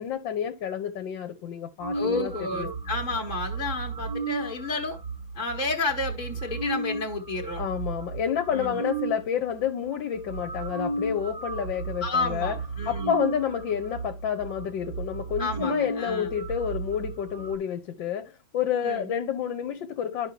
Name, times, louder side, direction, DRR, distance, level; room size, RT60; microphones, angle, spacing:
voice 1, 0.0-2.7 7.6-12.6 12.9-20.3, left 8 dB, 70° left, 1.6 m, -29 dB
sound 1, 1.8-9.2 9.9-10.0 10.2-17.5, right 3 dB, 25° right, 0.5 m, -34 dB
voice 2, 1.9-5.0 5.3-7.6 8.5-8.8 12.0-13.1 15.4-16.3 18.8-19.1, left 3 dB, 25° left, 1.4 m, -31 dB
11.5 x 5.6 x 2.8 m
omnidirectional pair, 2.1 m